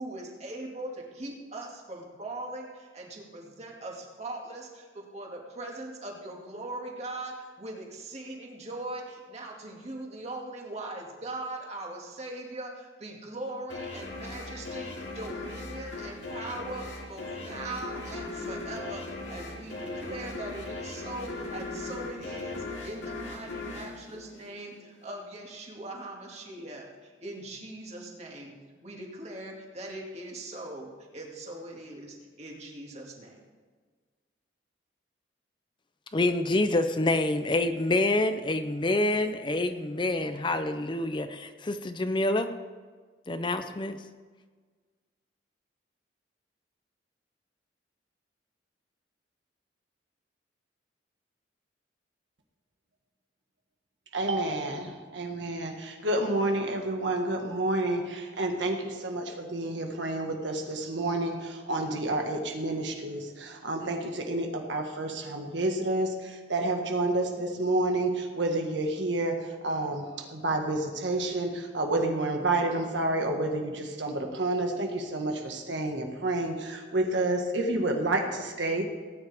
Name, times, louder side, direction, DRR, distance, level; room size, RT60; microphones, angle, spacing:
voice 1, 0.0-28.6 28.8-33.4, right 2 dB, 35° right, -1 dB, 2.2 m, -40 dB
sound 1, 13.7-25.0, left 2 dB, 80° left, 2.1 m, -38 dB
voice 2, 36.1-42.5 43.3-44.0, left 2 dB, 25° left, 9 dB, 0.5 m, -27 dB
voice 3, 54.1-78.9, right 2 dB, 75° right, 3 dB, 1.6 m, -29 dB
18.0 x 9.5 x 3.5 m, 1.5 s
head